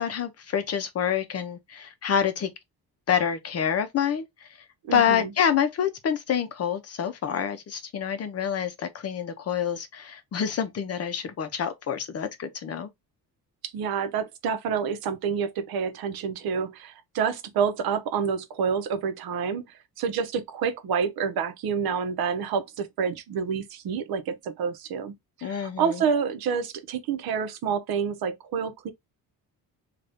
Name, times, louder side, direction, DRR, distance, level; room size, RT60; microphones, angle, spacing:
voice 1, 0.0-2.5 3.1-4.5 4.9-12.9 25.4-26.0, left 8 dB, 40° left, 0.6 m, -27 dB
voice 2, 4.9-5.3 13.7-19.6 20.0-25.1 25.4-28.9, right 6 dB, 70° right, 0.8 m, -28 dB
2.7 x 2.4 x 3.4 m
cardioid pair, 145°, 37 cm